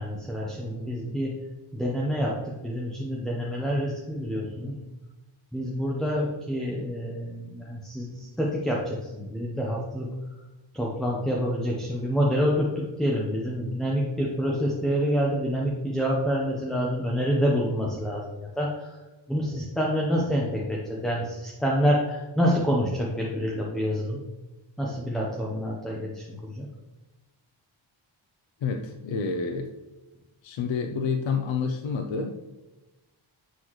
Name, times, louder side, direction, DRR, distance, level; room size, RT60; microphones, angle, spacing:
voice 1, 0.0-1.4 1.7-4.8 5.5-10.1 10.7-19.0 19.3-24.2 24.8-26.7, equal, ahead, -3 dB, 0.9 m, -27 dB
voice 2, 28.6-29.7 30.4-32.3, left 5 dB, 75° left, 5 dB, 0.6 m, -28 dB
8.3 x 3.9 x 3.1 m, 1.1 s
wide cardioid pair, 90°, 47 cm